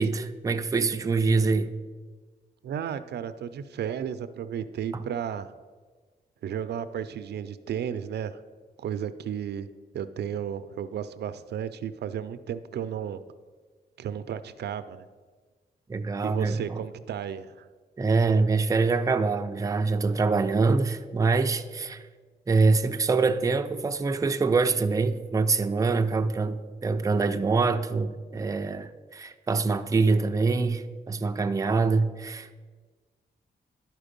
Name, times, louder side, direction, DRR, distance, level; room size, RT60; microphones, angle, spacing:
voice 1, 0.0-1.7 4.9-5.0 15.9-16.8 18.0-22.1 22.5-32.6, right 4 dB, 20° right, 0.4 m, -25 dB
voice 2, 2.6-5.5 6.4-8.4 8.8-9.7 9.9-13.2 14.0-15.1 16.2-17.7, right 8 dB, 80° right, 0.4 m, -33 dB
11.5 x 4.6 x 5.2 m
wide cardioid pair, 110°, 17 cm